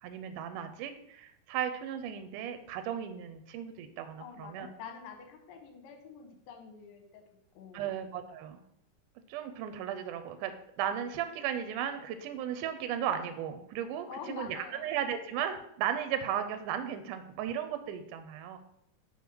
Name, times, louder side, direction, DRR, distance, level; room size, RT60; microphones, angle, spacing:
voice 1, 0.0-4.7 7.7-8.6 9.3-18.6, right 9 dB, 80° right, 8 dB, 2.0 m, -35 dB
voice 2, 4.2-7.9 14.1-14.9 17.8-18.0, left 6 dB, 85° left, 4 dB, 2.7 m, -47 dB
6.3 x 3.5 x 6.0 m, 0.72 s
omnidirectional pair, 4.0 m